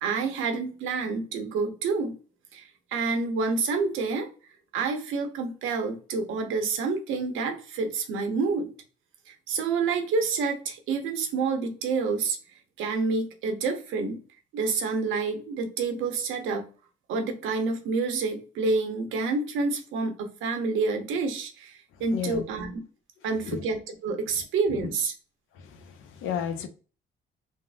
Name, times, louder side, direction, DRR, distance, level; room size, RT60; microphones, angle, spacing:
voice 1, 0.0-2.1 2.5-4.3 4.7-8.7 9.3-12.4 12.8-14.2 14.5-16.7 17.1-22.8 23.2-25.1, right 4 dB, 85° right, 0.7 m, -28 dB
voice 2, 22.1-22.4 23.5-23.6 25.8-26.7, left 8 dB, 85° left, 0.5 m, -32 dB
3.4 x 2.0 x 2.4 m
cardioid pair, 90°, 20 cm